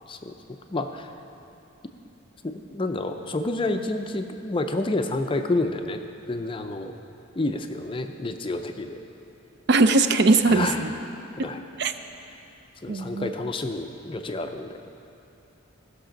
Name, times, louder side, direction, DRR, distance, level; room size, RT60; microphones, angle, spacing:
voice 1, 0.1-1.1 2.4-6.0 6.3-6.9 7.4-9.0 10.4-10.9 11.4-11.6 12.8-14.8, left 2 dB, 25° left, 6 dB, 0.4 m, -29 dB
voice 2, 9.7-10.9 11.4-11.5 11.8-11.9 12.9-13.3, right 3 dB, 50° right, 9 dB, 0.4 m, -20 dB
16.0 x 6.7 x 5.1 m, 2.9 s
head